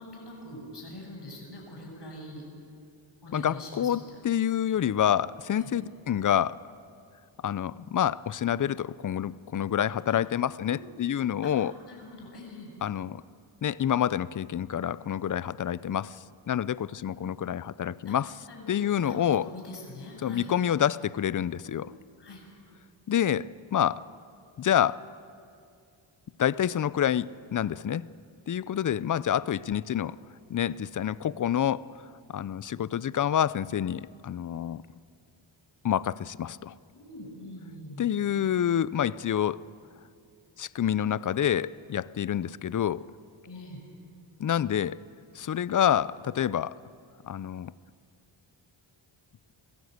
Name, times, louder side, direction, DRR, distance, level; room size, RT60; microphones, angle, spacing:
voice 1, 0.0-2.4 3.2-4.2 5.5-5.7 10.1-10.2 10.6-10.9 11.4-11.5 11.9-12.7 17.1-17.3 18.1-20.5 21.6-22.4 36.9-38.1 43.4-43.8, left 1 dB, 55° left, -1 dB, 7.4 m, -44 dB
voice 2, 3.3-6.6 7.4-11.7 12.8-13.2 13.6-16.2 16.5-18.3 18.7-19.5 20.2-21.9 23.1-23.5 23.7-24.0 24.6-25.0 26.4-28.0 28.5-30.2 30.5-31.8 32.3-34.8 35.8-36.7 38.0-39.6 40.6-43.0 44.4-44.9 45.4-46.7 47.2-47.7, left 10 dB, 40° left, 19 dB, 0.5 m, -27 dB
22.5 x 15.5 x 8.0 m, 2.4 s
cardioid pair, 75°, 48 cm